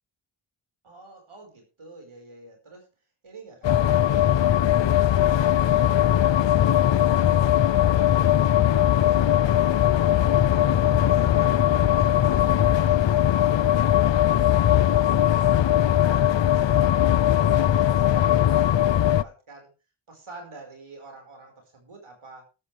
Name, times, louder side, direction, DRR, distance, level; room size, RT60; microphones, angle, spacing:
voice 1, 0.8-2.9 3.2-4.3 4.9-10.2 10.6-15.5 16.0-19.7 20.1-22.5, right 3 dB, 75° right, 3 dB, 5.0 m, -48 dB
sound 1, 3.6-19.2, left 11 dB, 60° left, 0.6 m, -20 dB
13.5 x 13.0 x 3.4 m, 0.31 s
wide cardioid pair, 95°, 50 cm